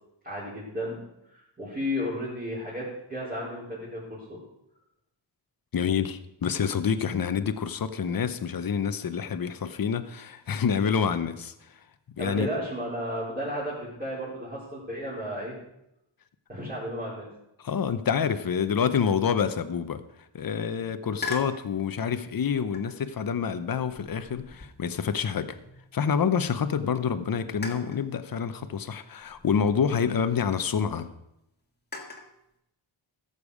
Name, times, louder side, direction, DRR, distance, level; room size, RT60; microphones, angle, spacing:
voice 1, 0.2-1.0 1.3-4.4 12.2-15.5 16.5-17.3, equal, 20° right, -10 dB, 4.2 m, -33 dB
voice 2, 5.7-11.8 12.2-12.5 17.6-20.0 20.3-25.6 25.9-31.1, left 7 dB, 45° left, 11 dB, 0.8 m, -27 dB
sound 1, 21.2-21.6 22.7-23.1 23.8-26.1 26.5-26.6 27.6-28.1 29.2-30.6 31.9-32.3, left 4 dB, 20° left, 1.6 m, -40 dB
13.5 x 6.9 x 4.9 m, 0.85 s
wide cardioid pair, 90°, 47 cm